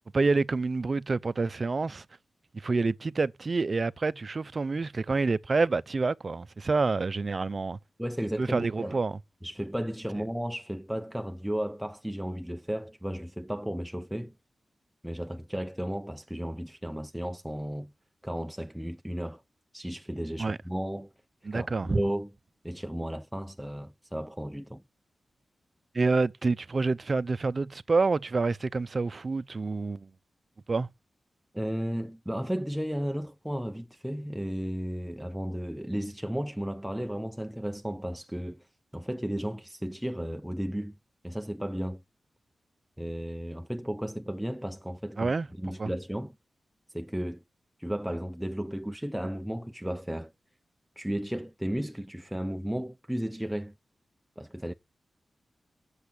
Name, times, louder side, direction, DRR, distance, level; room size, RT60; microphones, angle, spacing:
voice 1, 0.1-2.0 2.6-7.8 8.4-9.1 20.4-20.6 21.5-22.0 25.9-30.1 30.7-30.9 45.2-45.5 45.8-45.9, right 3 dB, 50° right, 0.6 m, -27 dB
voice 2, 8.0-9.0 9.4-14.3 15.0-17.9 18.2-19.4 19.7-21.1 21.5-22.3 22.6-24.8 31.5-38.7 38.9-41.0 41.2-42.0 43.0-46.4 46.9-47.4 47.8-50.3 51.0-53.7 54.4-54.7, equal, 5° right, 0.6 m, -34 dB
8.3 x 7.1 x 8.3 m
cardioid pair, 55°, 0 cm